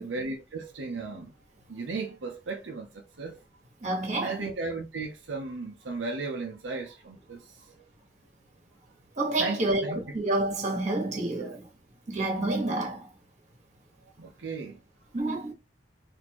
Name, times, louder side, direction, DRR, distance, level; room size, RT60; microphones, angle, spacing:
voice 1, 0.0-1.3 1.7-3.4 4.2-7.8 9.4-10.2 11.3-11.6 14.2-14.8, right 3 dB, 85° right, 0.7 m, -36 dB
voice 2, 3.8-4.4 9.2-11.7 12.1-13.1 15.1-15.5, right 2 dB, 40° right, 1.4 m, -29 dB
4.2 x 2.8 x 2.9 m
head